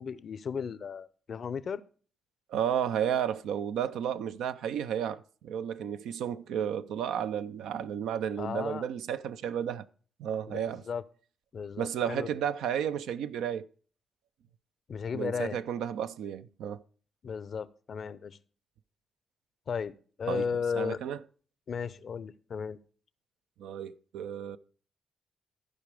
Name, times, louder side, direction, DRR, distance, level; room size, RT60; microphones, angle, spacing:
voice 1, 0.0-1.8 8.4-8.8 10.5-11.0 11.5-12.3 14.9-15.6 17.2-18.4 19.7-21.0 21.7-22.8, left 6 dB, 60° left, 0.5 m, -35 dB
voice 2, 2.5-9.9 10.2-10.8 11.8-13.6 15.1-16.8 20.3-20.5 20.7-21.2 23.6-24.6, right 9 dB, 80° right, 0.4 m, -32 dB
14.0 x 5.1 x 4.9 m
supercardioid pair, 50°, 0 cm